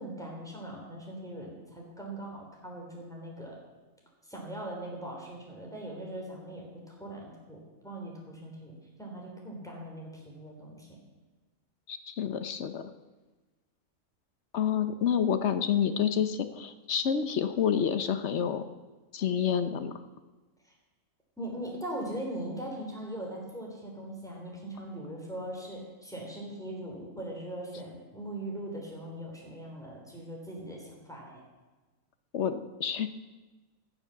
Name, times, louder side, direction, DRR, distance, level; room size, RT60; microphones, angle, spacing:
voice 1, 0.0-3.6 4.2-11.0 20.6-20.7 21.4-31.4, right 1 dB, ahead, -2 dB, 3.5 m, -40 dB
voice 2, 11.9-12.8 14.5-18.6 19.1-19.9 32.3-33.1, left 8 dB, 60° left, 10 dB, 1.0 m, -28 dB
16.0 x 7.1 x 7.0 m, 1.2 s
omnidirectional pair, 1.4 m